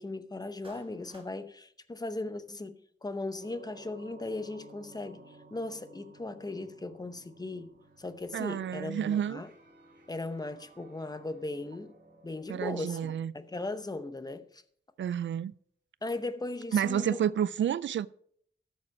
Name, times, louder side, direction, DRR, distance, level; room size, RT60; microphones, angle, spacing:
voice 1, 0.0-9.5 10.1-11.9 12.2-14.6 16.0-17.2, left 2 dB, 20° left, 0.8 m, -38 dB
Clapping, 0.6-1.3, right 2 dB, 30° right, 1.8 m, -56 dB
sound 1, 3.4-12.4, right 2 dB, 60° right, 3.3 m, -56 dB
voice 2, 8.3-9.4 12.5-13.3 15.0-15.5 16.7-18.1, right 9 dB, 85° right, 0.4 m, -30 dB
13.0 x 7.4 x 4.7 m
wide cardioid pair, 135°, 19 cm